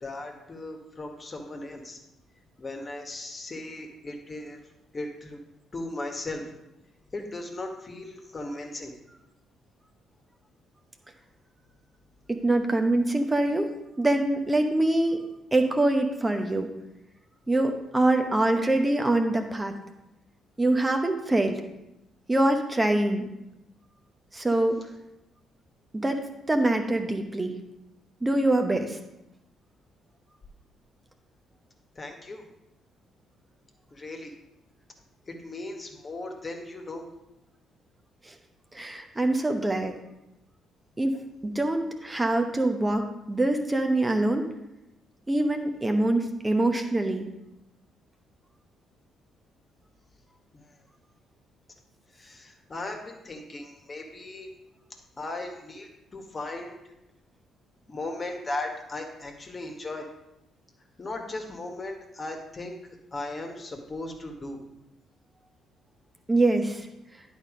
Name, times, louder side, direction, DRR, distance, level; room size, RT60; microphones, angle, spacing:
voice 1, 0.0-2.0 2.6-4.6 4.9-5.4 5.7-6.4 7.1-8.9 31.9-32.4 33.9-34.3 35.3-37.0 50.5-50.6 52.1-54.5 55.2-56.8 57.9-60.1 61.0-62.7 63.1-64.6, left 2 dB, 35° left, 3 dB, 1.6 m, -37 dB
voice 2, 12.3-13.7 14.0-15.2 15.5-16.7 17.5-19.7 20.6-21.6 22.3-23.3 24.3-24.8 25.9-26.2 26.5-27.5 28.2-29.0 38.2-38.3 38.7-39.9 41.0-41.2 41.4-44.4 45.3-47.3 66.3-66.9, right 2 dB, 20° right, 5 dB, 1.0 m, -24 dB
10.5 x 4.2 x 5.1 m, 0.90 s
figure-of-eight pair, 45°, 0 cm